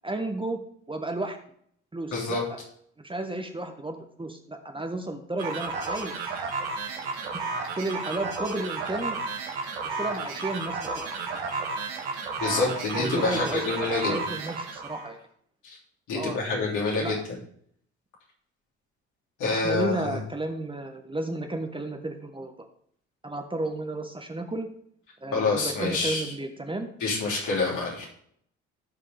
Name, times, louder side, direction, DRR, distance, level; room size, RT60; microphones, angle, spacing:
voice 1, 0.0-0.6 0.9-1.4 1.9-2.6 3.0-6.4 7.2-9.2 10.0-11.0 11.3-11.5 12.4-13.6 13.9-15.2 16.1-16.7 17.0-17.1 19.5-22.5 23.2-24.7 25.2-26.9, right 2 dB, 15° right, 5 dB, 1.4 m, -33 dB
voice 2, 2.1-2.4 12.4-14.2 15.6-15.8 16.1-17.2 19.4-20.2 25.3-26.3 27.0-28.1, left 3 dB, 60° left, -2 dB, 3.4 m, -27 dB
sound 1, 5.4-15.1, right 4 dB, 70° right, 1.8 m, -32 dB
16.5 x 5.6 x 3.6 m, 0.65 s
hypercardioid pair, 50°, 34 cm